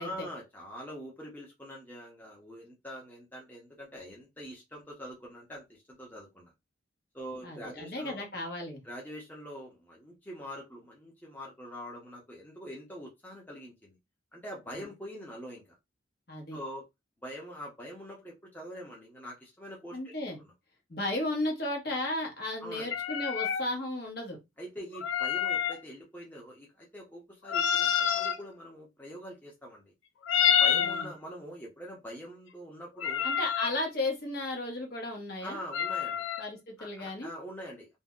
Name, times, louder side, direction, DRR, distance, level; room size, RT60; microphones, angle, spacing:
voice 1, 0.0-6.5 7.1-8.3 8.8-14.0 14.3-15.7 16.5-16.8 17.2-20.5 22.6-22.9 24.6-29.9 30.5-33.3 35.4-36.2 36.8-38.0, equal, 10° left, 0.7 m, -44 dB
voice 2, 7.4-8.8 14.7-14.9 16.3-16.6 19.9-20.4 20.9-24.4 30.7-31.1 33.2-35.6 36.4-37.3, left 2 dB, 50° left, 1.1 m, -34 dB
sound 1, 22.9-23.6 24.9-25.8 27.5-28.4 30.2-31.1 33.0-33.7 35.7-36.4, left 8 dB, 75° left, 0.4 m, -27 dB
2.7 x 2.1 x 3.6 m
head